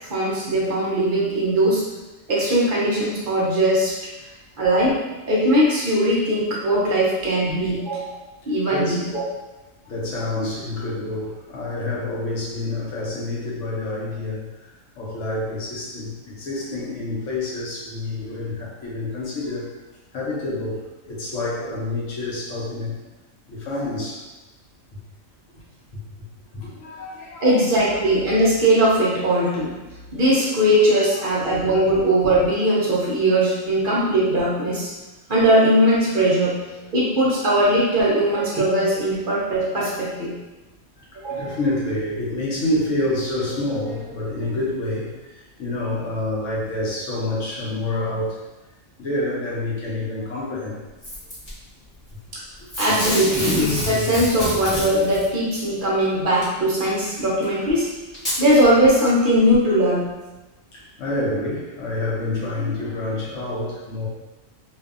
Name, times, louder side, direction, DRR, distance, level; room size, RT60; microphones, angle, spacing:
voice 1, 0.1-1.8 2.3-3.9 4.6-5.0 5.3-8.2 8.5-9.1 27.4-29.7 30.1-34.9 35.3-36.6 36.9-40.3 41.2-41.4 52.3-52.4 52.8-57.9 58.4-60.0, right 1 dB, 55° right, -6 dB, 0.6 m, -19 dB
voice 2, 8.7-9.1 9.9-14.4 15.0-19.6 20.1-22.9 23.5-24.2 26.5-27.5 27.8-27.9 31.1-31.4 36.2-36.3 37.2-37.4 41.3-45.1 45.6-48.3 49.0-50.8 60.7-64.1, left 2 dB, 65° left, -5 dB, 1.0 m, -28 dB
Packing tape duct tape / Tearing, 51.0-51.5 52.7-55.3 56.4-56.5 57.4-57.5 58.1-58.4 59.1-59.2, left 1 dB, 25° left, 0.8 m, -26 dB
2.6 x 2.3 x 2.4 m, 1.1 s
omnidirectional pair, 1.5 m